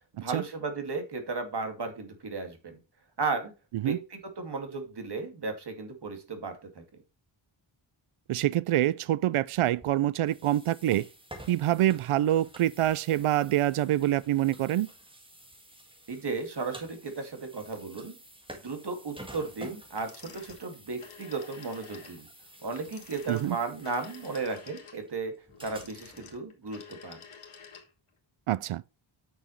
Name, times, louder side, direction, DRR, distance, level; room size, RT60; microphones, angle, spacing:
voice 1, 0.1-2.8 3.2-3.5 3.8-6.8 16.1-18.2 18.6-22.3 22.6-25.3 25.6-27.2, right 4 dB, 50° right, 2.3 m, -35 dB
voice 2, 8.3-11.0 11.5-14.9 23.3-23.6 28.5-28.8, right 13 dB, 85° right, 0.6 m, -26 dB
sound 1, 9.5-26.3, right 1 dB, 10° right, 1.9 m, -50 dB
sound 2, 20.0-28.1, left 6 dB, 85° left, 2.2 m, -50 dB
9.7 x 6.1 x 3.1 m
wide cardioid pair, 150°, 49 cm